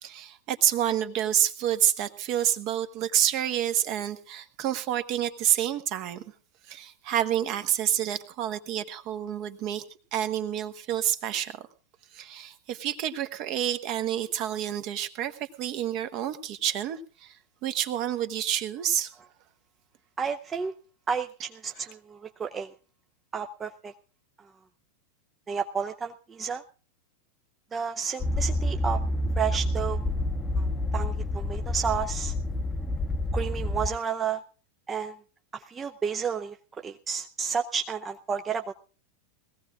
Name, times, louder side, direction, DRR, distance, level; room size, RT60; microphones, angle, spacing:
voice 1, 0.0-6.2 6.7-9.8 10.1-11.6 12.1-17.4 17.6-19.1, right 10 dB, 40° right, 10 dB, 1.1 m, -28 dB
voice 2, 20.2-20.7 21.1-22.7 23.3-23.9 25.5-26.6 27.7-29.0 29.4-30.0 30.6-30.7 30.9-32.3 33.3-34.4 34.9-35.2 35.5-36.6 36.8-38.7, right 6 dB, 20° right, 6 dB, 0.6 m, -31 dB
sound 1, 28.2-33.9, left 1 dB, 15° left, 0.8 m, -28 dB
21.0 x 16.0 x 2.5 m, 0.36 s
figure-of-eight pair, 90°, 0 cm